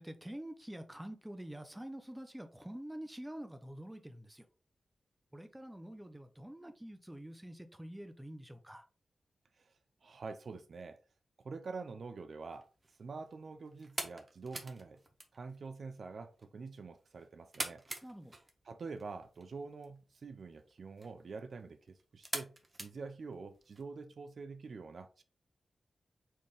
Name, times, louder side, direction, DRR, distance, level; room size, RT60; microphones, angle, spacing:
voice 1, 0.0-4.5 5.3-8.8 18.0-18.4, right 1 dB, 10° right, 0.7 m, -47 dB
voice 2, 10.0-11.0 11.4-12.7 13.0-15.0 15.3-17.8 18.6-25.2, right 4 dB, 65° right, 0.4 m, -46 dB
sound 1, 12.4-23.8, right 2 dB, 30° right, 1.0 m, -47 dB
4.4 x 3.5 x 3.3 m
wide cardioid pair, 80°, 0 cm